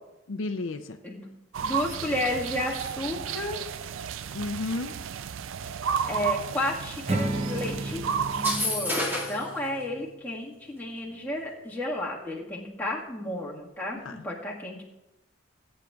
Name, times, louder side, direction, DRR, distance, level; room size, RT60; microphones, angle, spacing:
voice 1, 0.3-1.0 4.3-4.9 14.0-14.2, left 2 dB, 70° left, 7 dB, 0.5 m, -32 dB
sound 1, 1.5-8.6, right 7 dB, 70° right, 0.4 m, -32 dB
voice 2, 1.6-3.6 6.0-8.0 8.3-14.0 14.2-14.8, left 1 dB, 10° left, -4 dB, 1.6 m, -32 dB
Acoustic guitar / Strum, 7.1-10.4, right 1 dB, 30° right, 0.7 m, -33 dB
sound 2, 8.3-9.5, left 1 dB, 10° right, 2.1 m, -29 dB
19.0 x 8.9 x 2.4 m, 0.97 s
head